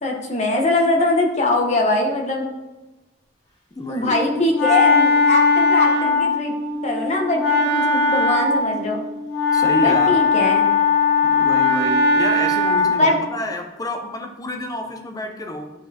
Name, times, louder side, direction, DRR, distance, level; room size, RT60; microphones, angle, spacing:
voice 1, 0.0-2.4 3.9-6.6 6.8-9.0 9.8-10.7 13.0-13.2, left 2 dB, 35° left, 1 dB, 1.0 m, -22 dB
voice 2, 3.7-4.1 9.5-10.2 11.2-15.7, left 1 dB, 20° left, 4 dB, 0.5 m, -28 dB
Wind instrument woodwind instrument, 4.0-13.1, left 3 dB, 60° left, 2.2 m, -19 dB
11.0 x 4.1 x 2.8 m, 1.1 s
head